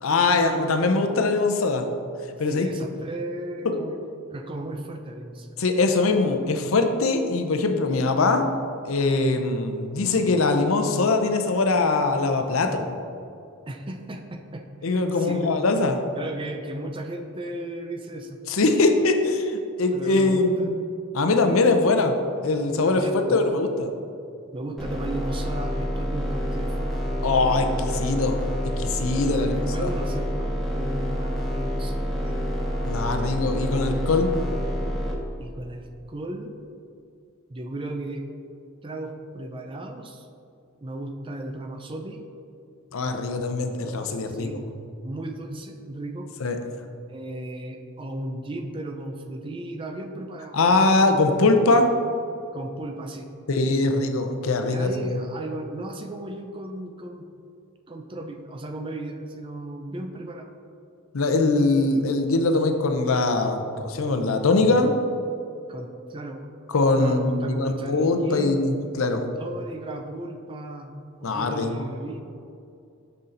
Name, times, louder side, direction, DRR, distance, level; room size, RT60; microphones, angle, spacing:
voice 1, 0.0-1.9 2.4-2.7 5.6-8.4 8.9-13.0 14.8-16.0 18.5-20.8 21.1-22.1 22.4-23.0 23.3-23.9 27.2-28.4 28.8-29.9 32.8-34.3 42.9-44.6 46.4-46.6 50.5-51.9 53.5-55.2 61.1-64.9 66.7-69.2 71.2-71.8, left 3 dB, 75° left, 6 dB, 0.6 m, -22 dB
voice 2, 2.5-4.0 4.3-5.5 6.7-6.8 13.7-15.5 16.1-18.4 19.9-20.7 22.9-23.4 24.5-26.9 29.1-32.7 35.4-36.5 37.5-38.2 38.8-40.3 40.8-42.2 44.3-44.6 45.0-46.3 47.1-50.6 52.5-53.3 54.7-57.3 57.9-60.5 65.7-66.5 67.0-68.7 69.4-70.9 71.2-72.2, right 1 dB, 25° right, 5 dB, 0.4 m, -35 dB
sound 1, 24.8-35.1, equal, ahead, 0.9 m, -28 dB
6.6 x 5.6 x 3.9 m, 2.5 s
head